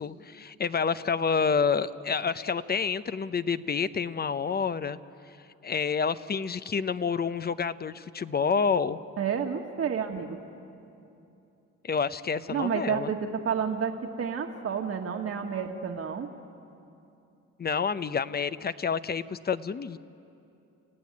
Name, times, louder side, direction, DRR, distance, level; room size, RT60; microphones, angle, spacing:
voice 1, 0.0-5.0 5.6-9.0 11.8-13.1 17.6-20.0, left 6 dB, 30° left, 14 dB, 0.8 m, -28 dB
voice 2, 9.2-10.4 12.5-16.3, right 7 dB, 50° right, 3 dB, 1.7 m, -30 dB
30.0 x 16.0 x 9.7 m, 2.8 s
cardioid pair, 90°, 30 cm